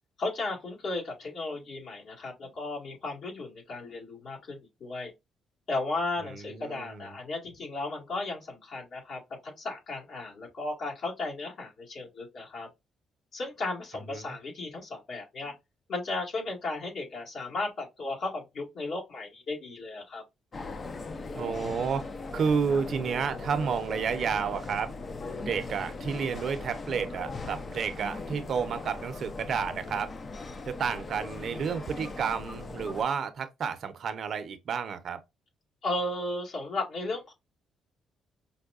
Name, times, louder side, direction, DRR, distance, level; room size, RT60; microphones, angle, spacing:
voice 1, 0.2-5.1 5.7-12.7 13.3-15.5 15.9-20.2 35.8-37.3, left 2 dB, 60° left, 1.9 m, -35 dB
voice 2, 6.3-7.2 14.1-14.4 21.3-22.1 22.3-24.9 25.4-30.1 30.7-35.2, right 6 dB, 60° right, 0.6 m, -31 dB
sound 1, 20.5-33.0, left 3 dB, 35° left, 0.5 m, -39 dB
5.4 x 2.2 x 2.4 m
cardioid pair, 90°, 0 cm